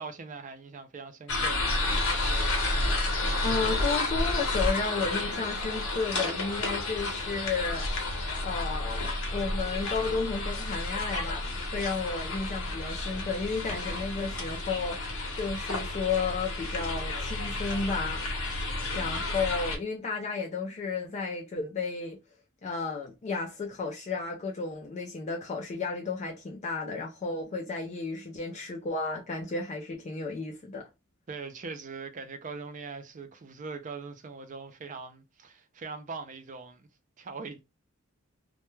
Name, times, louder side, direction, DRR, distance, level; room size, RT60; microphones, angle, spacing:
voice 1, 0.0-2.0 31.3-36.9 37.2-37.6, right 4 dB, 35° right, 0.4 m, -41 dB
sound 1, 1.3-19.8, left 2 dB, 75° left, 0.8 m, -31 dB
voice 2, 3.0-8.1 8.4-18.2 18.9-22.2 22.6-30.9, left 4 dB, 30° left, 0.3 m, -33 dB
2.2 x 2.1 x 3.0 m
head